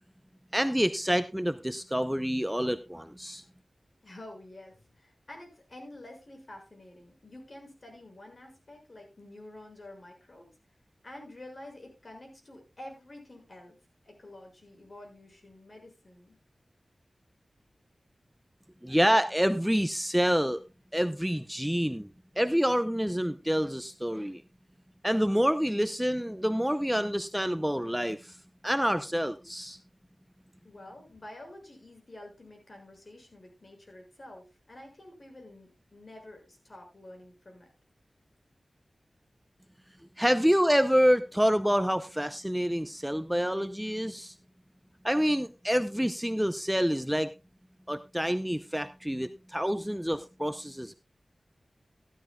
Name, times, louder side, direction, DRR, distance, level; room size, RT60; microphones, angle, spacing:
voice 1, 0.5-3.4 18.8-20.6 20.9-22.1 22.4-24.4 25.0-28.4 28.6-29.8 40.2-44.3 45.0-47.3 47.9-50.9, equal, 5° right, 10 dB, 0.7 m, -27 dB
voice 2, 4.0-10.5 11.0-13.7 14.0-16.4 30.6-37.7, left 1 dB, 45° left, 2 dB, 6.4 m, -49 dB
15.5 x 12.5 x 2.3 m, 0.27 s
wide cardioid pair, 75°, 0 cm